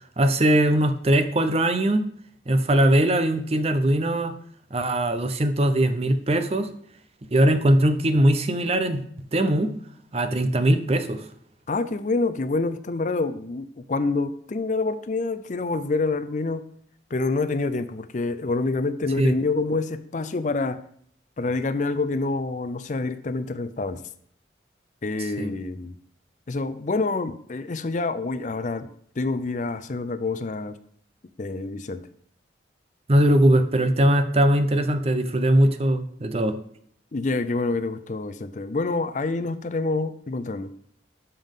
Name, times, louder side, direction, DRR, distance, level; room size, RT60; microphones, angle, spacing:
voice 1, 0.2-2.0 2.5-4.3 4.7-6.7 7.3-9.0 9.3-9.7 10.1-11.2 19.2-19.3 25.4-25.5 33.1-36.6, right 1 dB, 35° right, 9 dB, 0.6 m, -20 dB
voice 2, 11.7-16.6 17.1-20.8 21.4-24.0 25.0-26.0 26.5-28.9 29.2-30.8 31.4-32.0 37.1-40.7, left 3 dB, 40° left, 12 dB, 0.5 m, -27 dB
12.5 x 5.6 x 3.7 m, 0.64 s
head